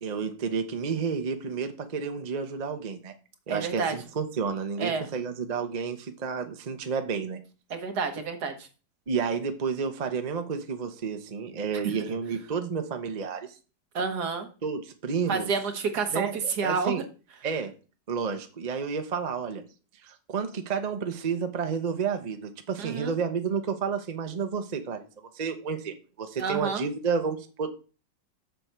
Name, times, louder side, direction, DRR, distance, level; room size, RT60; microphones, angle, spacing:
voice 1, 0.0-3.1 3.5-7.4 9.1-13.5 14.6-15.5 16.1-16.4 16.6-17.0 17.4-17.7 18.1-19.6 20.0-25.0 25.3-27.8, right 6 dB, 35° right, 7 dB, 0.8 m, -31 dB
voice 2, 3.5-4.0 4.8-5.0 7.7-8.7 11.7-11.9 13.9-14.5 15.3-17.0 22.8-23.1 26.4-26.8, right 5 dB, 70° right, 6 dB, 1.7 m, -29 dB
7.0 x 6.8 x 4.4 m, 0.35 s
omnidirectional pair, 1.8 m